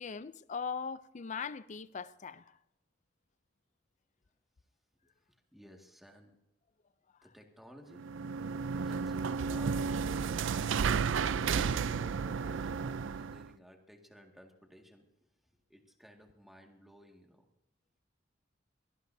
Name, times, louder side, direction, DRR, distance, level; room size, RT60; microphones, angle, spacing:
voice 1, 0.0-2.6, left 6 dB, 40° left, 0.5 m, -40 dB
voice 2, 5.3-6.4 7.2-8.1 8.6-10.6 11.4-15.1 15.7-17.4, equal, ahead, 2.0 m, -54 dB
sound 1, 7.9-13.5, right 6 dB, 85° right, 0.4 m, -32 dB
23.0 x 18.5 x 2.7 m
head